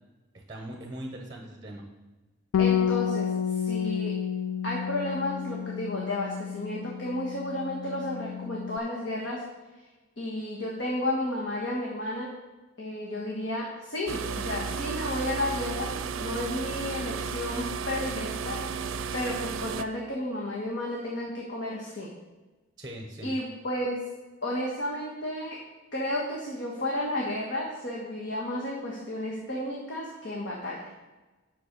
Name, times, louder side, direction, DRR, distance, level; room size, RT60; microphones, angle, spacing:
voice 1, 0.3-1.9 22.8-23.3, right 1 dB, 20° right, 2 dB, 1.0 m, -40 dB
Bass guitar, 2.5-8.8, left 8 dB, 90° left, 0.4 m, -30 dB
voice 2, 2.6-4.1 4.6-9.4 10.2-12.3 12.8-22.1 23.2-24.1 24.4-25.6 25.9-30.9, left 1 dB, 65° left, -3 dB, 1.5 m, -32 dB
sound 1, 14.1-19.8, right 5 dB, 85° right, 0.5 m, -33 dB
7.7 x 6.1 x 6.6 m, 1.2 s
head